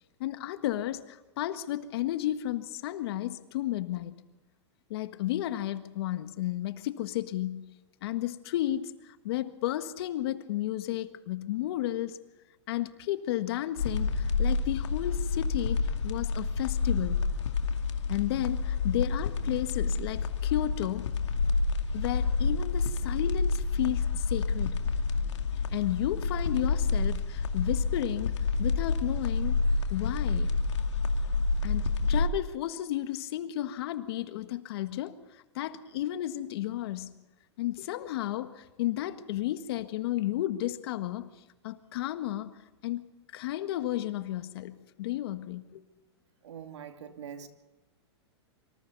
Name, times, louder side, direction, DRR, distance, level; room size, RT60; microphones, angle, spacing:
voice 1, 0.2-4.2 4.9-7.7 8.0-12.2 12.7-17.2 18.1-21.1 21.9-24.8 25.7-28.3 28.6-29.6 29.9-30.5 31.6-35.2 35.5-37.1 37.6-41.3 41.6-42.6 42.8-45.8, left 14 dB, 60° left, 1.6 m, -33 dB
sound 1, 13.8-32.3, left 4 dB, 85° left, 2.3 m, -29 dB
voice 2, 46.4-47.5, right 8 dB, 80° right, 2.6 m, -43 dB
25.5 x 25.0 x 4.1 m
hypercardioid pair, 130°, 15 cm